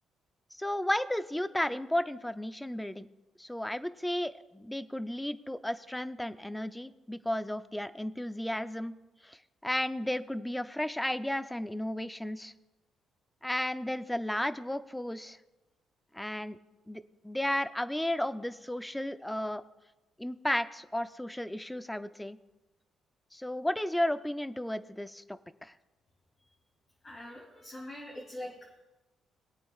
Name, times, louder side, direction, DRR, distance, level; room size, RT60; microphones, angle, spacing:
voice 1, 0.5-3.1 3.4-8.9 9.2-12.5 13.4-15.4 16.1-16.6 16.9-19.6 20.2-22.4 23.3-25.7, left 1 dB, 5° left, 12 dB, 0.5 m, -33 dB
voice 2, 27.0-28.8, left 1 dB, 30° left, -6 dB, 2.9 m, -43 dB
21.5 x 8.7 x 2.4 m, 1.1 s
cardioid pair, 105°, 0 cm